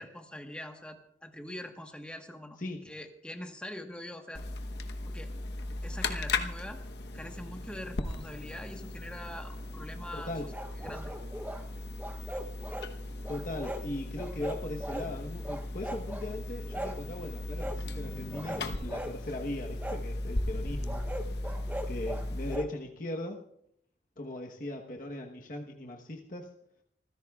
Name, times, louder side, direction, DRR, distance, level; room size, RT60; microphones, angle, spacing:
voice 1, 0.0-2.6 2.8-4.4 5.1-5.3 5.8-6.8 7.1-10.3 10.8-11.1, left 1 dB, 5° left, 4 dB, 1.2 m, -43 dB
sound 1, 4.3-22.6, left 2 dB, 75° left, 1.0 m, -37 dB
voice 2, 10.1-10.4 13.3-21.6 21.9-23.4 24.2-26.5, left 1 dB, 50° left, 1 dB, 1.1 m, -39 dB
sound 2, 10.5-11.6 12.0-12.9 13.2-13.9 14.2-15.1 15.4-16.3 16.7-17.0 17.6-17.8 18.3-19.2 19.8-20.0 20.9-22.7, equal, 10° right, 0.8 m, -39 dB
26.5 x 15.5 x 2.4 m, 0.70 s
head